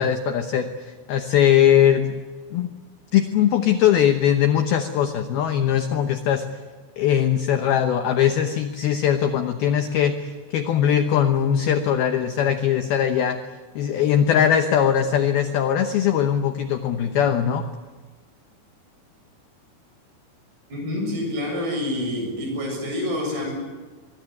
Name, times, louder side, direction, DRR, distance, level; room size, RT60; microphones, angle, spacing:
voice 1, 0.0-2.2 2.5-2.7 3.1-6.4 7.0-13.4 13.8-17.6, left 9 dB, 80° left, 7 dB, 2.2 m, -20 dB
voice 2, 20.7-23.5, left 1 dB, 50° right, 2 dB, 9.0 m, -27 dB
23.5 x 23.0 x 9.5 m, 1.4 s
omnidirectional pair, 6.0 m